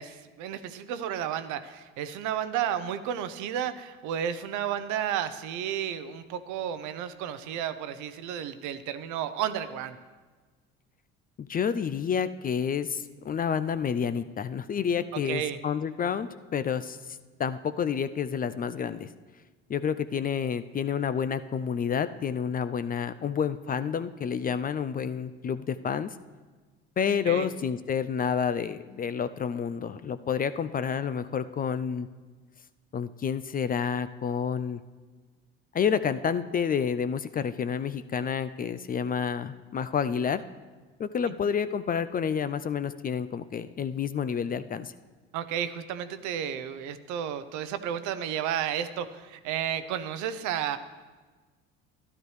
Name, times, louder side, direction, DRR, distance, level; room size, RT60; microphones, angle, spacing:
voice 1, 0.0-10.0 15.2-15.6 27.3-27.5 45.3-50.8, right 9 dB, 70° right, 12 dB, 0.7 m, -32 dB
voice 2, 11.4-19.1 19.7-26.1 27.0-32.1 32.9-34.8 35.7-40.4 41.0-44.9, left 7 dB, 30° left, 13 dB, 0.4 m, -29 dB
12.0 x 11.5 x 3.2 m, 1.4 s
supercardioid pair, 75°, 31 cm